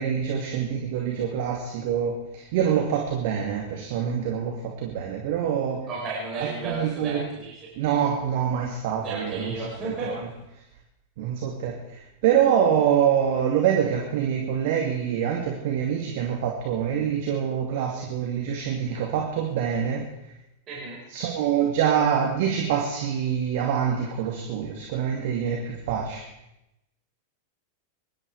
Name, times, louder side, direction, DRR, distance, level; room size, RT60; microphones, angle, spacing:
voice 1, 0.0-5.8 6.4-7.3 7.8-9.5 9.8-10.3 11.2-20.1 21.1-26.3, right 8 dB, 50° right, 0 dB, 2.6 m, -25 dB
voice 2, 5.9-7.7 9.0-10.1 20.7-21.0, right 3 dB, 30° right, -5 dB, 5.3 m, -33 dB
24.0 x 12.0 x 5.0 m, 0.90 s
figure-of-eight pair, 90°, 0 cm